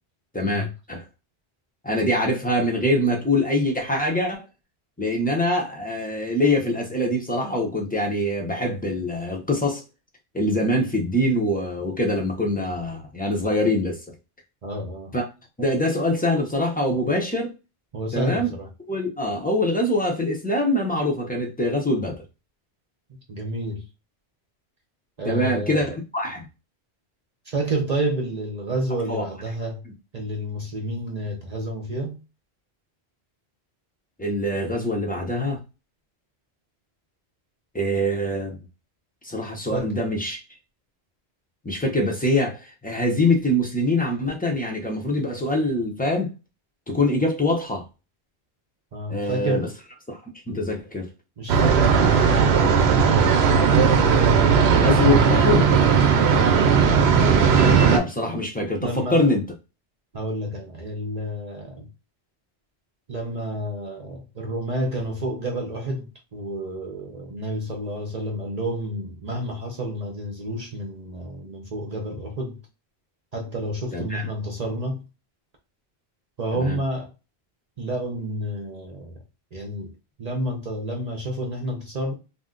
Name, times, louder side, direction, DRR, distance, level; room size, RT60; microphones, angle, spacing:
voice 1, 0.3-1.0 1.8-4.4 5.0-9.8 10.3-14.0 15.1-15.2 15.6-17.5 18.1-18.5 18.9-22.2 25.2-26.5 29.1-29.2 34.2-35.6 37.7-38.6 39.2-40.4 41.6-46.3 46.9-47.8 49.1-49.7 50.1-50.2 50.5-51.1 54.7-55.7 57.9-59.4 73.9-74.3 76.5-76.8, left 1 dB, 10° left, 0.5 m, -24 dB
voice 2, 14.6-15.1 17.9-18.7 23.3-23.8 25.2-25.9 27.5-29.8 30.1-32.2 39.7-39.9 48.9-49.7 51.4-53.3 58.8-59.2 60.1-61.9 63.1-72.6 73.3-75.0 76.4-77.1 77.8-79.1 79.5-79.9 80.2-82.1, right 1 dB, 45° right, 0.6 m, -29 dB
sound 1, 51.5-58.0, right 6 dB, 75° right, 0.8 m, -17 dB
2.6 x 2.1 x 3.7 m
omnidirectional pair, 1.1 m